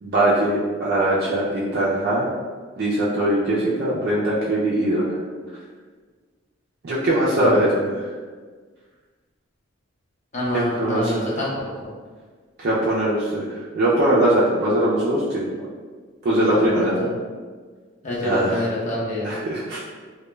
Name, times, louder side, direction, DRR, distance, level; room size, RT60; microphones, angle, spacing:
voice 1, 0.0-2.3 2.8-5.2 6.8-8.1 10.5-11.3 12.6-15.4 16.2-17.0 18.2-18.6 19.2-19.8, right 1 dB, 55° right, -7 dB, 0.4 m, -21 dB
voice 2, 10.3-11.9 16.4-17.1 18.0-19.3, left 1 dB, 35° left, -6 dB, 0.7 m, -27 dB
2.2 x 2.2 x 3.0 m, 1.5 s
head